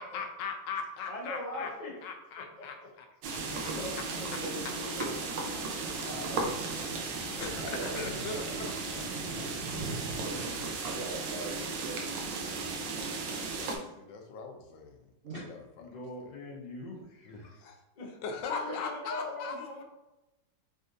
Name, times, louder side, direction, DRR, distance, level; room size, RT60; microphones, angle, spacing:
voice 1, 0.0-1.7 2.0-3.1 3.3-3.4 7.4-9.1 13.3-15.0 15.3-15.6 16.2-16.3 17.3-17.8 18.2-19.7, left 5 dB, 85° left, 4 dB, 1.3 m, -39 dB
voice 2, 1.1-2.0 2.4-2.9 3.5-5.1 5.9-6.5 7.7-8.5 15.8-17.6 18.0-18.1 18.5-19.8, left 2 dB, 50° left, -2 dB, 0.5 m, -42 dB
sound 1, 3.2-13.8, right 3 dB, 85° right, 1.3 m, -35 dB
voice 3, 7.6-8.0 8.3-8.5 9.1-9.4 10.8-13.8 15.2-15.4 18.7-18.8, right 2 dB, 65° right, -4 dB, 0.5 m, -44 dB
4.2 x 3.8 x 2.6 m, 0.98 s
omnidirectional pair, 1.9 m